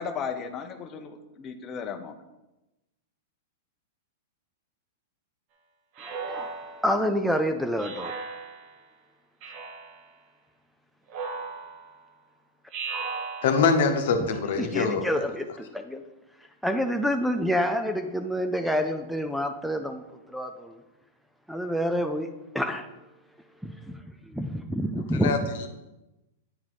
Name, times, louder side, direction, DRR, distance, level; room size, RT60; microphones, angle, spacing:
voice 1, 0.0-2.1, left 6 dB, 30° left, 6 dB, 0.7 m, -35 dB
voice 2, 6.0-6.6 6.8-8.2 14.6-16.0 16.6-20.8 21.5-22.9 23.6-25.5, equal, ahead, 7 dB, 0.4 m, -28 dB
Speech synthesizer, 6.0-7.1 7.8-8.8 9.4-10.1 11.1-12.0 12.7-13.9, right 4 dB, 45° right, 1.1 m, -37 dB
voice 3, 13.4-15.1 25.2-25.4, left 5 dB, 65° left, 5 dB, 1.0 m, -23 dB
8.8 x 3.9 x 4.8 m, 0.99 s
hypercardioid pair, 130°, 0 cm